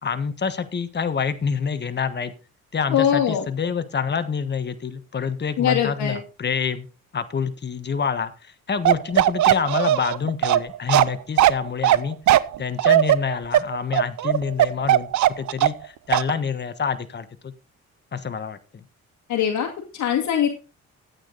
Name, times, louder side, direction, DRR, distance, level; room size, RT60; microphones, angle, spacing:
voice 1, 0.0-2.3 2.7-6.9 7.1-12.2 12.6-15.1 15.4-17.5 18.1-18.8, left 6 dB, 35° left, 10 dB, 1.4 m, -27 dB
voice 2, 2.9-3.4 5.6-6.2 19.3-19.7 19.9-20.5, left 9 dB, 75° left, 1 dB, 2.2 m, -21 dB
Bark, 8.8-15.8 16.1-16.3, right 13 dB, 70° right, 0.7 m, -18 dB
13.0 x 8.9 x 4.0 m, 0.33 s
cardioid pair, 90°, 30 cm